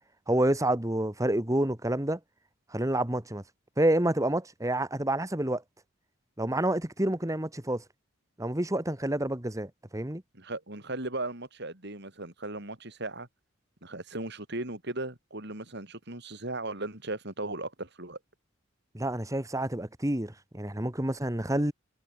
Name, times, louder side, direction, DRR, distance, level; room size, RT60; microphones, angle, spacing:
voice 1, 0.3-2.2 2.7-3.4 3.8-5.6 6.4-7.8 8.4-10.2 18.9-21.7, right 1 dB, 15° right, 1.8 m, -28 dB
voice 2, 10.3-13.3 13.8-18.2, right 2 dB, 55° right, 5.2 m, -37 dB
head